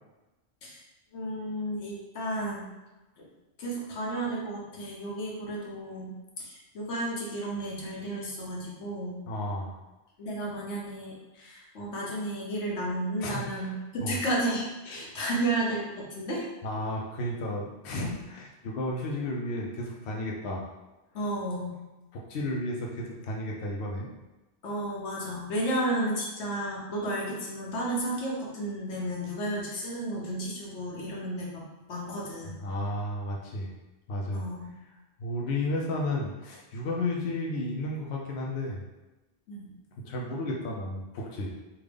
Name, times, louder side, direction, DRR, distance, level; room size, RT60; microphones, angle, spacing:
voice 1, 1.1-2.7 3.2-3.3 3.6-9.2 10.2-16.5 21.1-21.7 24.6-32.6 34.3-34.7 39.5-39.7, right 1 dB, 90° left, -3 dB, 1.1 m, -33 dB
voice 2, 9.3-9.8 13.2-13.6 14.0-14.2 16.6-20.6 22.1-24.1 32.6-33.7 34.1-34.5 35.2-38.8 40.0-41.5, left 1 dB, 70° left, -2 dB, 0.8 m, -33 dB
3.6 x 2.4 x 3.3 m, 1.1 s
omnidirectional pair, 1.2 m